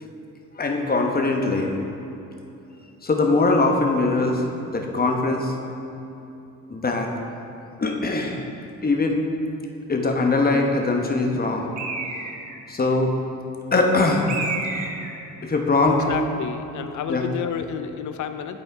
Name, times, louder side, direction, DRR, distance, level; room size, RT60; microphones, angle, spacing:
voice 1, 0.6-1.7 3.0-5.5 6.7-7.1 7.8-8.4 8.8-9.2 9.9-11.7 12.7-13.1 13.7-14.3 14.6-14.9 15.4-16.2 17.1-17.2, left 3 dB, 30° left, 2 dB, 1.0 m, -21 dB
Bird, 11.8-12.6 14.3-15.2, right 3 dB, 60° right, 1.1 m, -30 dB
voice 2, 15.9-18.6, left 8 dB, 65° left, 9 dB, 0.5 m, -30 dB
12.0 x 4.2 x 3.5 m, 2.8 s
cardioid pair, 75°, 33 cm